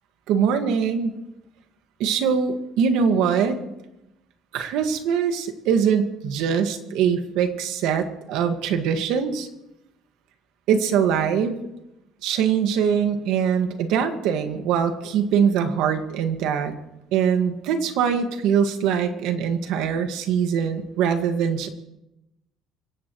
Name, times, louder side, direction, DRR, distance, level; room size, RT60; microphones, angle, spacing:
voice 1, 0.3-1.2 2.0-3.6 4.5-9.5 10.7-11.6 12.2-16.7 17.1-21.7, right 7 dB, 85° right, 6 dB, 1.9 m, -22 dB
26.0 x 17.0 x 3.2 m, 0.89 s
cardioid pair, 175°, 0 cm